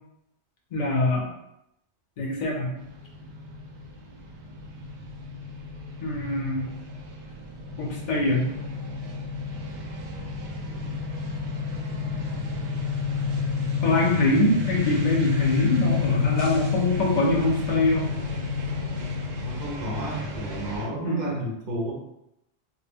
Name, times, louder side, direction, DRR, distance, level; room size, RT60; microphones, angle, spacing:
voice 1, 0.7-1.2 2.2-2.8 6.0-6.7 7.8-8.5 13.8-18.0 21.0-21.4, left 2 dB, 50° left, -1 dB, 0.6 m, -24 dB
sound 1, 2.8-20.9, left 5 dB, 80° right, 0.9 m, -30 dB
voice 2, 19.4-21.9, right 1 dB, 50° right, -2 dB, 0.6 m, -31 dB
2.2 x 2.1 x 3.4 m, 0.83 s
omnidirectional pair, 1.1 m